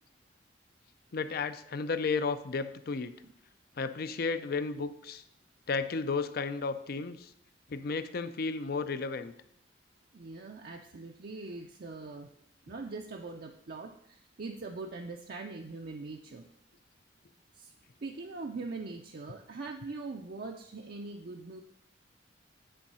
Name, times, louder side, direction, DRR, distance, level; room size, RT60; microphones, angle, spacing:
voice 1, 1.1-3.1 3.8-5.2 5.7-7.3 7.7-9.3, left 4 dB, 55° left, 12 dB, 0.5 m, -33 dB
voice 2, 10.1-12.3 12.7-16.5 17.5-17.7 18.0-21.6, right 3 dB, 55° right, 2 dB, 0.5 m, -42 dB
10.0 x 3.7 x 5.5 m, 0.71 s
head